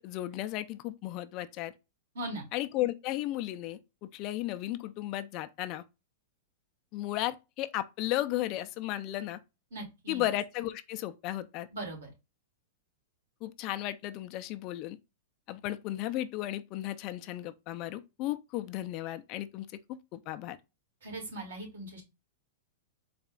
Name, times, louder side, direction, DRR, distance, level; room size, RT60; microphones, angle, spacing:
voice 1, 0.0-1.7 2.5-3.8 4.1-5.8 6.9-9.4 10.1-11.7 13.4-15.0 15.5-19.7 20.1-20.6, left 14 dB, 40° left, 0.4 m, -34 dB
voice 2, 2.1-2.5 9.7-10.3 11.7-12.1 21.0-22.0, right 1 dB, 90° right, 2.5 m, -39 dB
4.2 x 2.4 x 3.7 m
hypercardioid pair, 145°, 0 cm